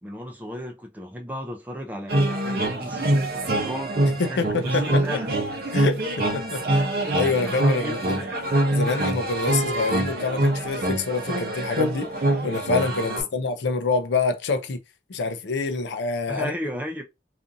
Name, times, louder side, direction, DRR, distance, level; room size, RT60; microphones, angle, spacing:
voice 1, 0.0-5.3 6.5-6.9 7.4-8.4 13.1-13.3 16.3-17.0, equal, 10° right, 0.4 m, -35 dB
sound 1, 2.1-13.2, right 1 dB, 55° right, 0.7 m, -24 dB
voice 2, 4.0-5.0 5.7-6.0 6.3-6.8 7.1-8.3 8.7-12.1 12.4-14.8 15.1-16.5, left 4 dB, 75° left, 0.4 m, -26 dB
2.6 x 2.5 x 2.5 m
head